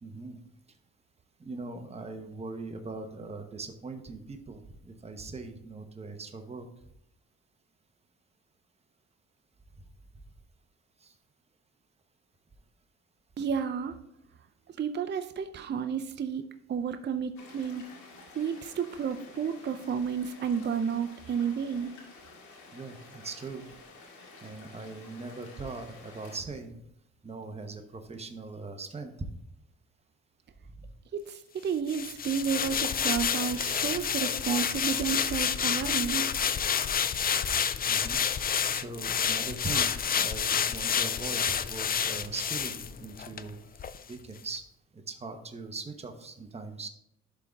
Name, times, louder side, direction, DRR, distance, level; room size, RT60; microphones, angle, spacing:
voice 1, 0.0-0.4 1.4-6.7 11.0-11.1 22.7-23.7 24.4-26.8 27.2-29.1 30.8-30.9 37.2-37.5 37.9-38.2 38.7-39.9 40.2-43.6 44.1-44.6 44.9-46.9, right 3 dB, 20° right, 5 dB, 0.9 m, -40 dB
voice 2, 13.4-14.0 14.8-17.9 18.3-22.0 31.1-36.3, right 7 dB, 35° right, 9 dB, 0.5 m, -31 dB
sound 1, 17.4-26.4, left 3 dB, 75° left, 2.1 m, -51 dB
sound 2, 31.9-43.5 43.8-44.0, left 7 dB, 30° left, 0.4 m, -29 dB
11.5 x 3.8 x 3.5 m, 0.77 s
cardioid pair, 90°, 30 cm